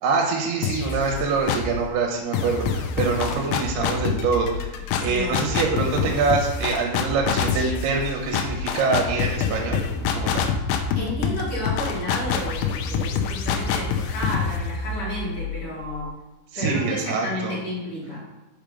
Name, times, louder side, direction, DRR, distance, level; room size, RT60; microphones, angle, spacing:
voice 1, 0.0-9.8 10.1-10.4 16.5-17.5, right 4 dB, 70° right, 0 dB, 2.9 m, -25 dB
sound 1, 0.6-1.8 2.3-16.0, left 6 dB, 80° left, 2.3 m, -26 dB
voice 2, 5.0-5.4 11.0-16.1 16.6-18.2, left 1 dB, 40° left, -6 dB, 2.4 m, -31 dB
6.5 x 5.4 x 5.3 m, 1.1 s
omnidirectional pair, 5.3 m